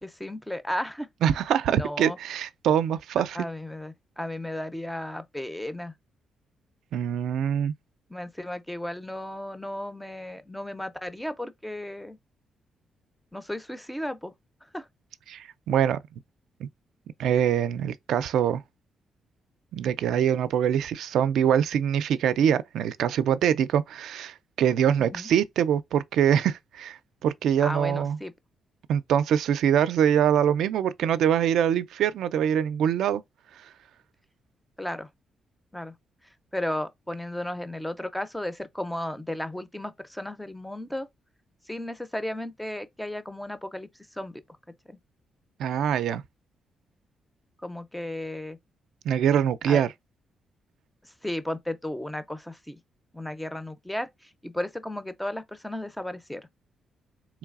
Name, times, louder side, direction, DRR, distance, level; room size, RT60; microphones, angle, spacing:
voice 1, 0.0-1.1 1.7-2.2 3.3-5.9 8.1-12.2 13.3-14.3 14.7-14.9 25.0-25.3 27.6-28.3 34.8-35.1 35.7-35.9 36.5-41.1 41.7-44.4 44.9-45.0 47.6-48.6 49.7-49.8 51.0-52.8 53.1-56.5, left 1 dB, 5° left, 0.4 m, -34 dB
voice 2, 1.2-3.4 6.9-7.7 15.3-16.0 16.6-16.7 17.2-18.6 19.7-28.2 28.9-33.2 45.6-46.2 49.1-49.9, right 9 dB, 85° right, 0.3 m, -24 dB
3.8 x 3.1 x 2.3 m
cardioid pair, 160°, 0 cm